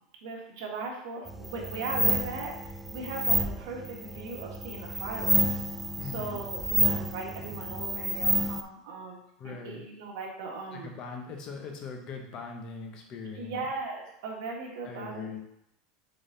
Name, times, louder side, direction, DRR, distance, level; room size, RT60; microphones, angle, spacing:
voice 1, 0.2-2.5 2.9-5.6 6.0-9.2 9.4-10.9 13.3-15.4, right 3 dB, 70° right, 0 dB, 1.7 m, -38 dB
sound 1, 1.3-8.6, right 1 dB, 5° right, 0.3 m, -29 dB
voice 2, 6.0-6.4 9.4-9.8 10.7-13.7 14.8-15.4, left 4 dB, 35° left, 2 dB, 1.0 m, -40 dB
6.9 x 3.9 x 4.0 m, 0.78 s
supercardioid pair, 160°, 2 cm